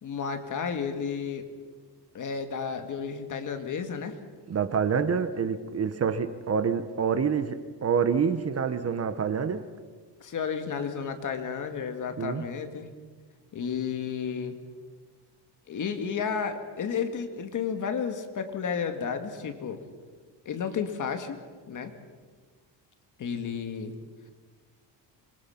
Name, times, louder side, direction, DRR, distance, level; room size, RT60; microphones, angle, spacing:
voice 1, 0.0-1.5 2.1-4.2 10.2-12.9 13.5-14.6 15.7-19.8 20.5-21.4 21.7-21.9 23.2-23.9, left 6 dB, 45° left, 6 dB, 2.1 m, -32 dB
voice 2, 4.5-9.7 12.2-12.4, right 6 dB, 35° right, 11 dB, 1.1 m, -27 dB
26.0 x 23.0 x 5.9 m, 1.5 s
cardioid pair, 150°, 43 cm